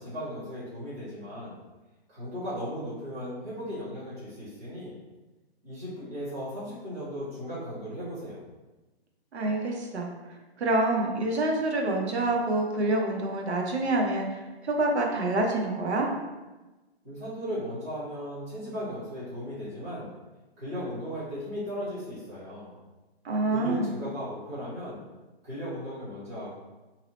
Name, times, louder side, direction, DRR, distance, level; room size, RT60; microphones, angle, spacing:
voice 1, 0.0-1.6 2.1-4.9 5.6-8.4 17.0-20.1 20.6-22.7 23.5-25.0 25.4-26.6, equal, 15° right, -11 dB, 0.8 m, -36 dB
voice 2, 9.3-10.1 10.6-16.1 23.2-24.0, right 2 dB, 85° right, 1 dB, 0.8 m, -27 dB
2.8 x 2.0 x 4.0 m, 1.1 s
hypercardioid pair, 170°, 32 cm